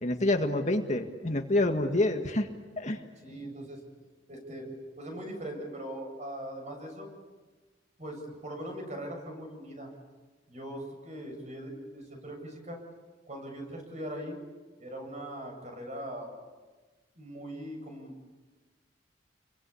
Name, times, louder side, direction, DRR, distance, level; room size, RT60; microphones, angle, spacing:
voice 1, 0.0-2.5 2.8-3.0, left 1 dB, 40° left, 4 dB, 1.8 m, -27 dB
voice 2, 3.2-3.8 4.3-4.7 5.0-7.1 8.0-9.9 10.5-12.8 13.3-14.4 14.8-16.3 17.2-18.2, right 1 dB, 40° right, 3 dB, 7.6 m, -40 dB
29.5 x 23.0 x 8.5 m, 1.3 s
head